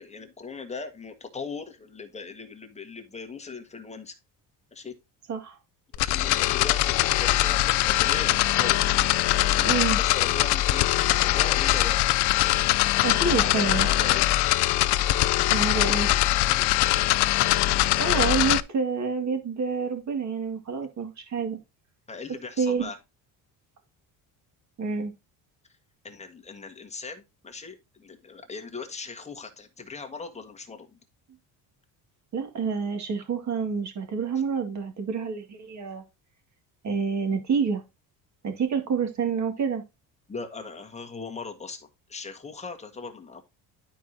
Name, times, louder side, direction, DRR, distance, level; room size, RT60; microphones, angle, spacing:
voice 1, 0.0-4.1 4.7-4.9 5.9-8.8 9.4-9.7 10.0-12.1 13.3-14.2 16.4-16.7 22.1-23.0 26.0-31.0 40.3-43.4, left 4 dB, 15° left, 1.5 m, -39 dB
sound 1, 5.9-18.6, left 16 dB, 80° left, 0.6 m, -22 dB
voice 2, 9.6-10.0 13.0-13.9 15.5-16.1 18.0-21.6 22.6-22.9 24.8-25.1 32.3-36.0 36.8-37.8 38.4-39.8, right 5 dB, 45° right, 2.1 m, -28 dB
11.5 x 4.7 x 2.7 m
cardioid pair, 125°, 39 cm